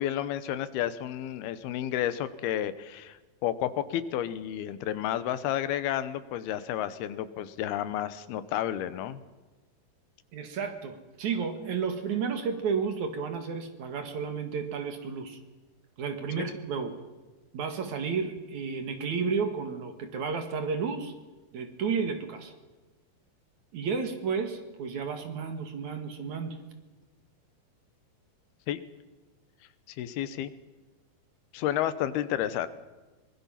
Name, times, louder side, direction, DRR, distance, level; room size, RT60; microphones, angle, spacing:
voice 1, 0.0-9.2 16.4-16.5 28.7-28.8 29.9-30.5 31.5-32.7, left 11 dB, 85° left, 13 dB, 3.0 m, -31 dB
voice 2, 10.3-15.4 16.0-17.0 17.5-21.1 21.5-22.5 23.7-26.6, right 5 dB, 55° right, 7 dB, 2.9 m, -32 dB
24.5 x 21.5 x 5.8 m, 1.2 s
omnidirectional pair, 4.4 m